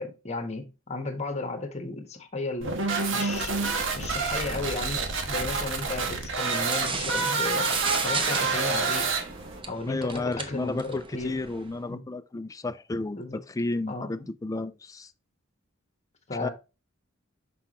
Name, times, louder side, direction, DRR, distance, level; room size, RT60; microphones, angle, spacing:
voice 1, 0.0-2.8 3.1-3.6 3.9-7.7 8.0-9.1 9.7-11.4 11.9-12.0 13.2-13.4 13.9-14.3 16.3-16.5, left 3 dB, 35° left, 1.3 m, -34 dB
sound 1, 2.6-9.6, right 4 dB, 65° right, 1.4 m, -28 dB
sound 2, 6.5-11.8, right 4 dB, 25° right, 0.8 m, -35 dB
voice 2, 9.9-15.1 16.4-16.5, left 2 dB, 15° left, 0.4 m, -32 dB
5.9 x 5.8 x 3.0 m
head